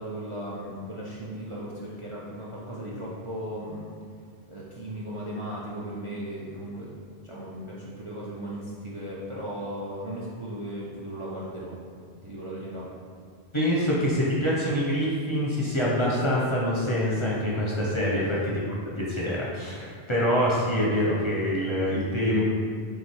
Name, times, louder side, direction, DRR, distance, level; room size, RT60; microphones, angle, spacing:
voice 1, 0.0-3.8 4.5-6.9 7.2-11.8 12.2-12.9 18.1-18.4, right 1 dB, 45° right, -6 dB, 0.4 m, -36 dB
voice 2, 13.5-18.5 19.0-22.4, equal, 35° left, -6 dB, 0.5 m, -25 dB
3.3 x 3.1 x 4.2 m, 2.2 s
omnidirectional pair, 1.1 m